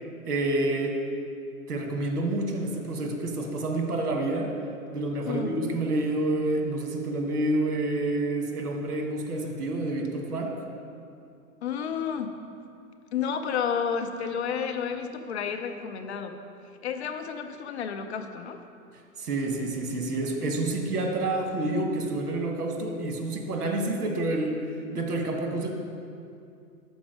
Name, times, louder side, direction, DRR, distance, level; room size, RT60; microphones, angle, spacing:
voice 1, 0.3-1.0 1.7-4.5 4.9-10.5 19.2-24.6 24.9-25.7, right 2 dB, 75° right, 2 dB, 1.4 m, -28 dB
voice 2, 5.2-5.6 11.6-12.4 13.1-16.4 16.8-18.6, left 7 dB, 45° left, 7 dB, 0.6 m, -31 dB
6.3 x 4.7 x 6.1 m, 2.5 s
hypercardioid pair, 140°, 45 cm